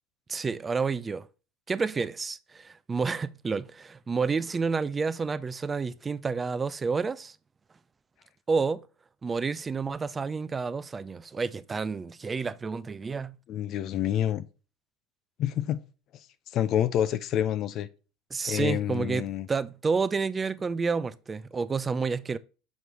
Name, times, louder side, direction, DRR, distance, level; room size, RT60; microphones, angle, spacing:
voice 1, 0.3-1.3 1.7-7.4 8.5-8.8 9.2-13.4 18.3-22.4, right 4 dB, 25° right, 0.4 m, -30 dB
voice 2, 13.5-14.4 15.4-15.8 16.5-17.9 18.5-19.5, left 10 dB, 50° left, 0.5 m, -27 dB
6.3 x 5.2 x 3.0 m
hypercardioid pair, 95°, 0 cm